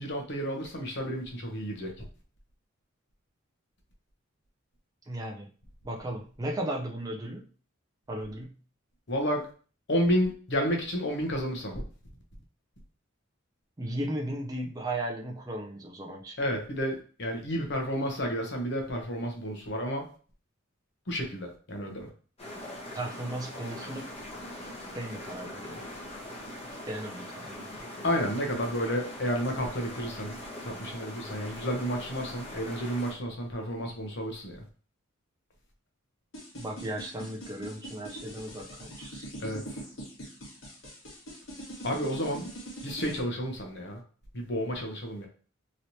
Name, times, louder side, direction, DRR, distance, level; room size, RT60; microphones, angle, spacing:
voice 1, 0.0-2.0 9.1-9.5 9.9-11.7 16.4-20.1 21.1-22.1 28.0-30.4 30.6-34.6 39.4-39.8 41.8-42.5 42.8-44.0 44.3-45.3, equal, 55° left, 2 dB, 0.8 m, -31 dB
voice 2, 5.1-5.5 5.8-7.5 8.1-8.6 13.8-16.4 22.9-24.1 24.9-25.8 26.8-27.9 36.5-39.3, right 1 dB, 20° right, 0 dB, 0.4 m, -36 dB
sound 1, 22.4-33.1, left 1 dB, 30° left, 1.0 m, -42 dB
sound 2, 36.3-43.2, right 1 dB, 90° left, 1.3 m, -42 dB
3.1 x 2.9 x 2.7 m, 0.40 s
head